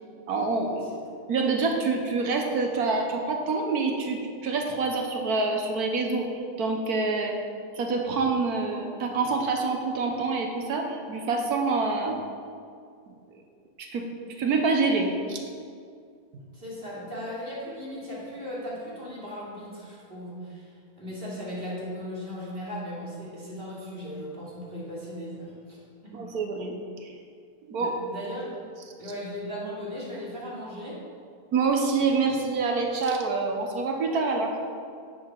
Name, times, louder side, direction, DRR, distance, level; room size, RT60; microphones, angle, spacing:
voice 1, 0.3-0.8 1.3-6.3 6.6-7.4 7.7-12.3 13.1-13.2 13.8-14.1 14.4-15.4 16.3-16.4 26.1-26.7 27.0-27.1 27.7-28.0 31.5-34.5, right 4 dB, 75° right, 3 dB, 1.5 m, -26 dB
voice 2, 16.5-20.7 21.0-25.8 26.0-26.3 27.8-28.6 29.0-31.0, equal, 35° right, -7 dB, 2.9 m, -37 dB
9.9 x 7.7 x 4.6 m, 2.3 s
omnidirectional pair, 1.6 m